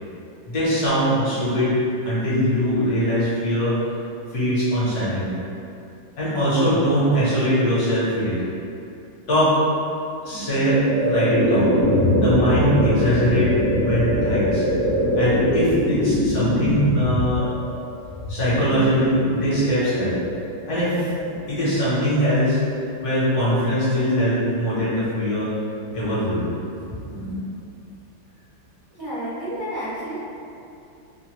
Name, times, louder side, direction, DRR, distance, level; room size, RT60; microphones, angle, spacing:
voice 1, 0.5-1.8 2.0-3.8 4.3-5.3 6.2-8.4 9.3-9.6 10.2-11.7 12.2-14.7 15.1-17.5 18.3-20.2 20.7-21.1 21.5-22.6 23.0-25.5 25.9-26.5, equal, 60° left, -10 dB, 1.2 m, -21 dB
sound 1, 10.3-21.4, equal, 55° right, 0.9 m, -23 dB
voice 2, 26.7-27.5 29.0-30.1, equal, 25° right, -15 dB, 0.4 m, -31 dB
3.2 x 2.1 x 2.8 m, 2.6 s
omnidirectional pair, 2.1 m